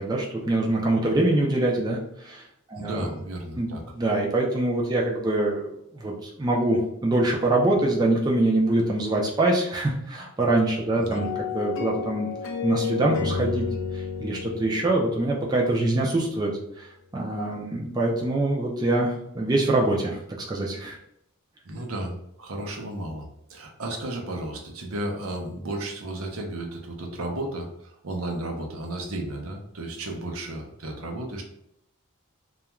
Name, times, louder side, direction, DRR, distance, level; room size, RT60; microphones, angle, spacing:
voice 1, 0.0-2.4 2.7-3.1 3.6-5.6 5.9-12.3 12.6-13.7 13.9-20.2 20.5-21.0, right 2 dB, 20° right, -2 dB, 0.4 m, -24 dB
voice 2, 2.7-3.9 10.9-11.3 21.6-31.4, right 1 dB, 80° right, 2 dB, 0.6 m, -33 dB
sound 1, 11.1-16.3, left 6 dB, 60° left, 0.4 m, -32 dB
2.3 x 2.2 x 2.9 m, 0.78 s
head